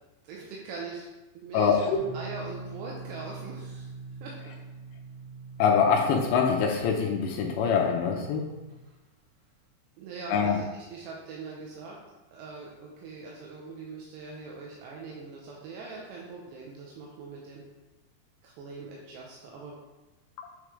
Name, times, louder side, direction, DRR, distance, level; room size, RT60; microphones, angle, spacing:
voice 1, 0.3-1.1 1.3-3.9 4.2-4.4 10.0-12.0 12.3-17.6 18.4-19.7, right 4 dB, 80° right, -2 dB, 2.8 m, -42 dB
voice 2, 1.5-2.0 5.6-8.5 10.3-10.6 20.4-20.5, left 6 dB, 85° left, 1 dB, 2.8 m, -24 dB
sound 1, 1.9-8.8, right 4 dB, 60° right, 4.4 m, -44 dB
8.9 x 4.9 x 3.2 m, 1.1 s
omnidirectional pair, 5.2 m